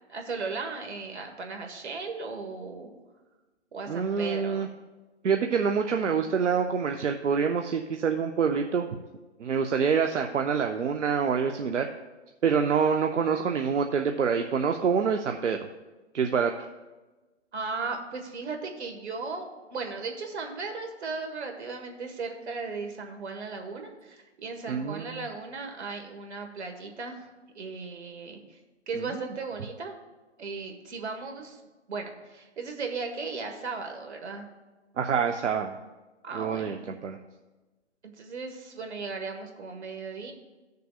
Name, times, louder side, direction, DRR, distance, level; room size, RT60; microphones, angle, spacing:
voice 1, 0.1-2.9 3.7-4.7 17.5-27.3 27.5-28.6 28.9-29.9 30.4-31.6 31.9-34.5 36.2-36.9 38.0-40.3, right 4 dB, 70° right, 4 dB, 1.6 m, -36 dB
voice 2, 3.9-4.7 5.2-8.9 9.4-11.9 12.4-15.7 16.1-16.5 24.7-25.2 35.0-35.7 36.3-37.2, right 6 dB, 85° right, 4 dB, 0.7 m, -26 dB
15.5 x 6.6 x 2.4 m, 1.2 s
hypercardioid pair, 140°, 35 cm